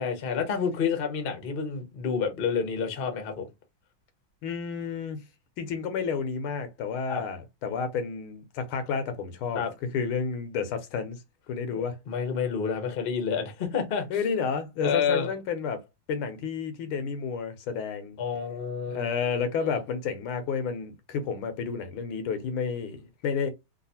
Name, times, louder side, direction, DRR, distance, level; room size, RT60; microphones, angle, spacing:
voice 1, 0.0-3.5 7.1-7.2 9.5-9.7 12.1-14.1 14.8-15.3 18.2-19.0, left 6 dB, 55° left, 0.6 m, -29 dB
voice 2, 4.4-5.2 5.6-11.2 11.5-12.0 14.1-18.2 18.9-23.5, left 6 dB, 90° left, 1.6 m, -31 dB
3.8 x 2.4 x 2.7 m
omnidirectional pair, 2.3 m